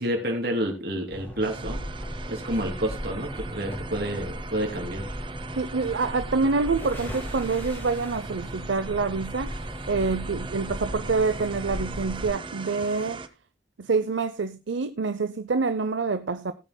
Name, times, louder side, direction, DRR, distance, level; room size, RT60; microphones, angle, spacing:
voice 1, 0.0-1.8 2.3-5.2, right 1 dB, 55° right, 3.0 m, -29 dB
sound 1, 1.1-12.3, equal, 10° left, 4.2 m, -36 dB
sound 2, 1.4-13.3, right 4 dB, 25° right, 0.7 m, -40 dB
voice 2, 5.6-13.2 13.8-16.5, right 4 dB, 85° right, 0.6 m, -26 dB
18.5 x 9.0 x 2.2 m
head